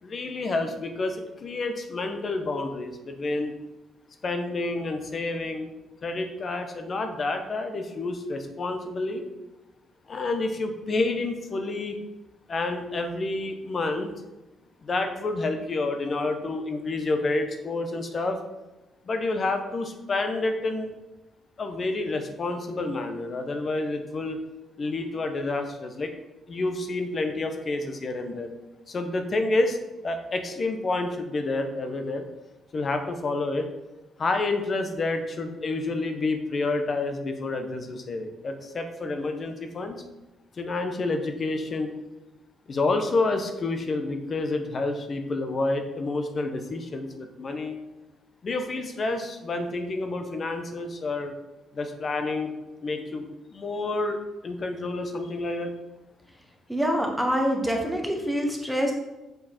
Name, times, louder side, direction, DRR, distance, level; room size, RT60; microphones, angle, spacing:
voice 1, 0.0-3.5 4.2-5.7 6.0-9.3 10.1-12.0 12.5-14.1 14.8-18.4 19.0-20.9 21.6-24.4 24.8-26.1 26.5-28.5 28.9-29.8 30.0-32.3 32.7-33.7 34.2-40.0 40.6-41.9 42.7-47.8 48.4-51.3 51.7-52.5 52.8-53.2 53.5-55.7, left 2 dB, 40° left, 6 dB, 1.0 m, -29 dB
voice 2, 56.7-58.9, equal, ahead, 1 dB, 1.2 m, -25 dB
6.5 x 5.0 x 4.3 m, 1.0 s
cardioid pair, 90°, 0 cm